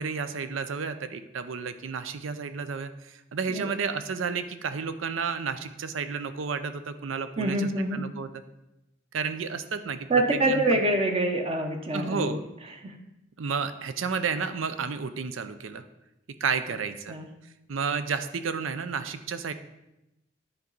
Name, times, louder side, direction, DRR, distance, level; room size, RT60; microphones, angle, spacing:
voice 1, 0.0-8.3 9.1-10.1 10.4-10.8 11.9-12.4 13.4-15.8 16.4-17.1 17.7-19.5, right 5 dB, 85° right, 11 dB, 0.6 m, -31 dB
voice 2, 7.4-8.0 10.1-12.4 12.8-13.0 17.1-17.3, right 2 dB, 30° right, 4 dB, 0.7 m, -26 dB
10.0 x 4.6 x 4.0 m, 0.91 s
head